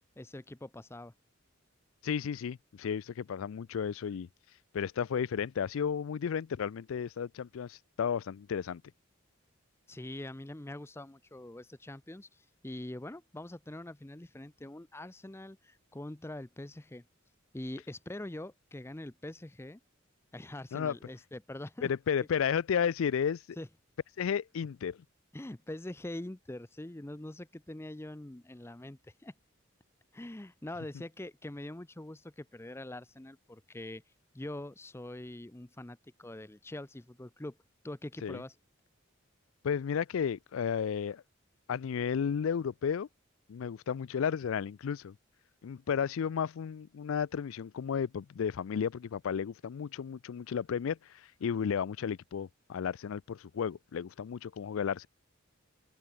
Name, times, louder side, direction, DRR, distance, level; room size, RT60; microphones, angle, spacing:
voice 1, 0.2-1.1 9.9-17.0 17.5-19.8 20.3-21.9 23.6-23.7 25.3-29.3 30.1-34.0 34.3-37.6 37.8-38.6, left 1 dB, 10° left, 0.6 m, -44 dB
voice 2, 2.0-4.3 4.7-8.8 20.7-20.9 21.8-23.4 24.2-25.0 38.2-38.4 39.6-41.2 41.7-43.1 43.5-45.1 45.6-51.0 51.4-55.1, left 7 dB, 70° left, 0.4 m, -33 dB
open air
head